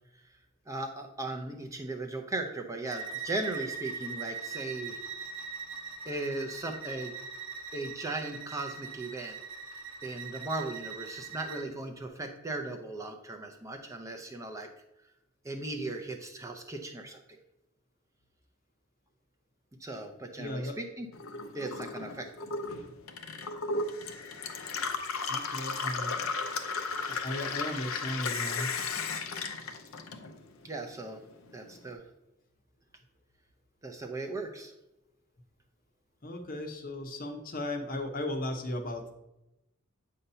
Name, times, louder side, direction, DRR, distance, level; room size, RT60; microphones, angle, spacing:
voice 1, 0.7-5.0 6.1-7.1 7.7-9.4 10.0-14.7 15.4-17.2 19.8-21.1 21.5-22.5 30.6-31.2 31.5-32.0 33.8-34.7, right 2 dB, 15° right, 2 dB, 0.5 m, -37 dB
Bowed string instrument, 2.9-11.7, right 5 dB, 75° right, 0.9 m, -41 dB
voice 2, 20.4-20.8 25.3-26.3 27.1-28.7 36.2-39.1, left 1 dB, 40° left, 4 dB, 0.7 m, -36 dB
Gurgling / Water tap faucet / Sink (filling or washing), 21.1-30.6 31.0-31.8, left 4 dB, 80° left, 0.7 m, -35 dB
7.8 x 2.8 x 5.4 m, 0.93 s
head